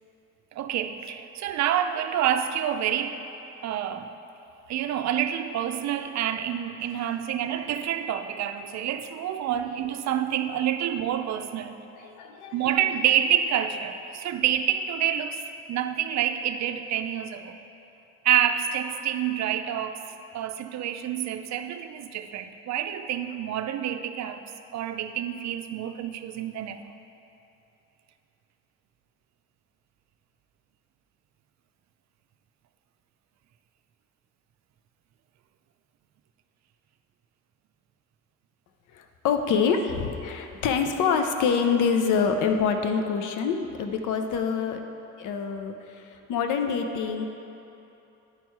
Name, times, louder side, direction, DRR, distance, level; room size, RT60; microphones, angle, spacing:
voice 1, 0.5-3.2 3.6-4.1 4.7-11.7 12.5-17.6 18.2-24.4 24.7-26.9, right 10 dB, 65° right, 9 dB, 0.5 m, -28 dB
voice 2, 12.0-12.6 38.9-44.8 45.2-47.3, left 6 dB, 85° left, 6 dB, 0.7 m, -26 dB
9.7 x 4.5 x 4.6 m, 2.9 s
cardioid pair, 90°, 30 cm